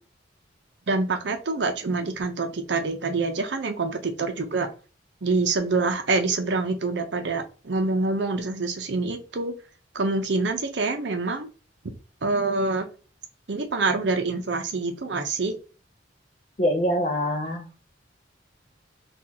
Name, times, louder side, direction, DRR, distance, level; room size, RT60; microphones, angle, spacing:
voice 1, 0.9-4.7 5.2-9.5 9.9-11.5 12.2-12.9 13.5-15.5, right 3 dB, 70° right, 6 dB, 0.6 m, -26 dB
voice 2, 16.6-17.9, equal, 40° left, 2 dB, 0.5 m, -25 dB
4.3 x 2.4 x 2.7 m, 0.34 s
head